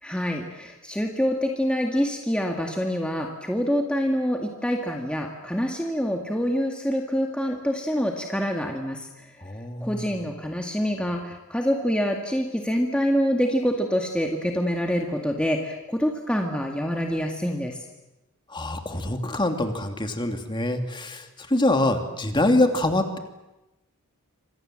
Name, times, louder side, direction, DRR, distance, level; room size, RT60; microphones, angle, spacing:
voice 1, 0.0-9.3 9.8-17.8, equal, 5° left, 1 dB, 2.0 m, -26 dB
voice 2, 9.4-10.0 18.5-23.2, left 1 dB, 20° left, 5 dB, 2.6 m, -24 dB
28.5 x 26.0 x 7.7 m, 0.99 s
head